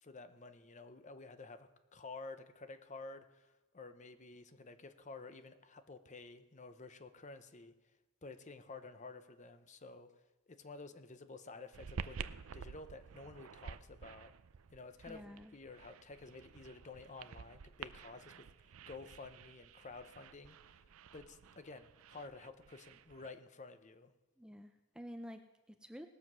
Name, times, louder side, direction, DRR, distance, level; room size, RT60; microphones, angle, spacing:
voice 1, 0.0-7.7 8.2-10.1 10.5-12.3 12.5-14.3 14.7-20.8 21.1-24.1, left 3 dB, 35° left, 10 dB, 0.7 m, -52 dB
sound 1, 11.7-23.3, right 6 dB, 75° right, 0.5 m, -51 dB
voice 2, 15.1-15.5 24.4-26.1, equal, 5° right, 7 dB, 0.5 m, -50 dB
19.0 x 7.4 x 6.1 m, 1.1 s
head